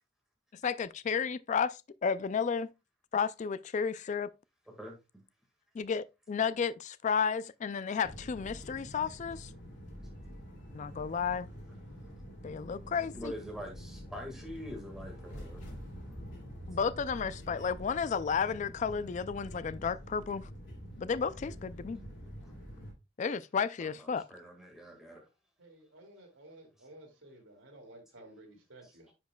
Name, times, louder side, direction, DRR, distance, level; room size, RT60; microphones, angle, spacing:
voice 1, 0.6-2.7 3.1-4.3 5.7-9.5 10.7-11.5 12.4-13.3 16.7-20.5 21.0-22.0 23.2-24.2, left 6 dB, 40° left, 0.3 m, -32 dB
sound 1, 8.0-22.9, equal, 65° left, 2.7 m, -46 dB
voice 2, 13.1-15.6 22.4-22.5 23.8-25.2 29.1-29.2, equal, ahead, 1.8 m, -44 dB
voice 3, 25.6-29.1, right 1 dB, 85° right, 2.5 m, -54 dB
10.0 x 5.2 x 2.3 m
head